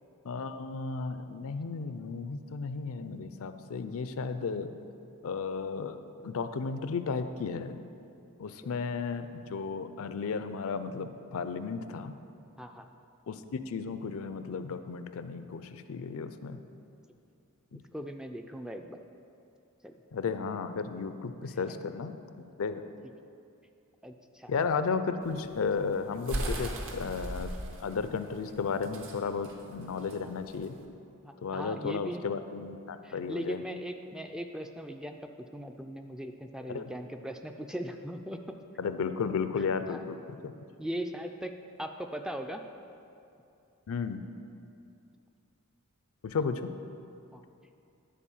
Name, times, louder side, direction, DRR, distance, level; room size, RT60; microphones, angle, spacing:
voice 1, 0.2-4.7 5.2-6.0 6.2-7.8 8.4-12.1 13.3-13.4 13.7-16.6 17.7-17.8 20.1-22.8 24.5-27.5 27.8-30.7 31.4-33.6 36.7-36.9 38.8-40.2 40.4-40.5 43.9-44.2 46.2-46.7, left 5 dB, 65° left, 10 dB, 0.4 m, -34 dB
voice 2, 12.6-12.9 17.7-19.0 19.8-19.9 21.7-21.8 24.0-24.5 24.9-25.0 30.2-30.4 31.2-32.2 33.0-38.6 39.9-40.0 40.4-40.5 40.8-41.5 41.8-42.6 47.3-47.4, equal, 5° right, 5 dB, 0.3 m, -39 dB
sound 1, 25.2-30.8, right 1 dB, 60° right, 0.9 m, -38 dB
10.0 x 4.2 x 7.1 m, 2.6 s
head